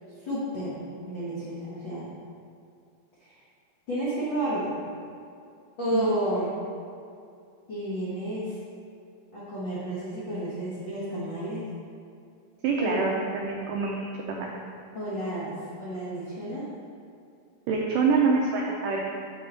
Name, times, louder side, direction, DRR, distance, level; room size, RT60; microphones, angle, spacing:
voice 1, 0.2-2.0 3.2-3.3 3.9-4.8 5.8-6.5 7.7-8.6 9.3-11.6 12.8-13.0 14.9-16.7, right 1 dB, 70° left, -10 dB, 1.1 m, -31 dB
voice 2, 12.6-14.5 17.7-19.1, right 4 dB, 90° right, -1 dB, 1.9 m, -26 dB
8.9 x 7.1 x 3.9 m, 2.4 s
omnidirectional pair, 4.7 m